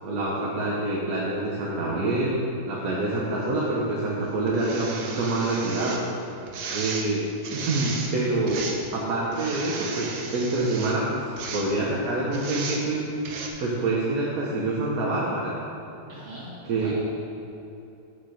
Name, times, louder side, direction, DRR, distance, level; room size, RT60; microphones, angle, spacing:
voice 1, 0.0-6.0 6.7-7.2 7.5-11.2 11.5-13.1 13.6-15.6 16.7-16.9, right 2 dB, 55° right, -4 dB, 1.4 m, -26 dB
sound 1, 3.4-3.5 4.5-6.0 6.5-7.1 7.4-8.1 8.5-8.9 9.3-10.9 11.4-11.6 12.3-12.8 13.2-13.5, right 4 dB, 85° right, 1.6 m, -35 dB
voice 2, 16.1-16.9, right 1 dB, 40° right, -8 dB, 2.5 m, -41 dB
8.7 x 6.0 x 5.0 m, 2.9 s
omnidirectional pair, 1.9 m